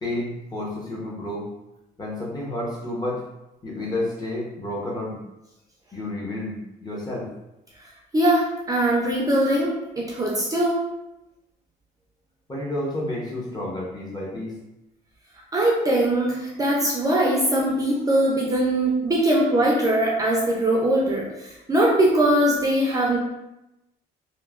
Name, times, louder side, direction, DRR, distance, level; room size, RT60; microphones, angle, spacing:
voice 1, 0.0-1.5 2.0-3.2 3.6-5.2 5.9-7.3 12.5-14.6, left 1 dB, 25° left, -4 dB, 0.8 m, -30 dB
voice 2, 8.1-10.8 15.5-23.2, right 1 dB, 20° right, -3 dB, 0.5 m, -21 dB
2.9 x 2.1 x 2.3 m, 0.93 s
cardioid pair, 110°, 17 cm